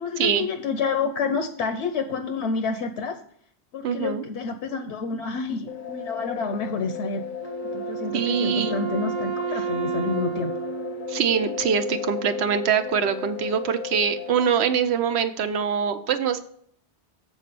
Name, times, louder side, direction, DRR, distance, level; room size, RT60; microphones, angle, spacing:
voice 1, 0.0-3.2 3.7-7.2 7.7-10.5, left 4 dB, 80° left, 8 dB, 0.9 m, -29 dB
voice 2, 3.8-4.2 8.1-8.8 11.1-16.4, right 7 dB, 75° right, 10 dB, 0.9 m, -24 dB
sound 1, 5.7-14.6, left 9 dB, 55° left, 0.7 m, -35 dB
Wind instrument woodwind instrument, 7.4-11.9, right 8 dB, 30° right, 0.6 m, -32 dB
7.4 x 4.1 x 6.7 m, 0.64 s
omnidirectional pair, 1.1 m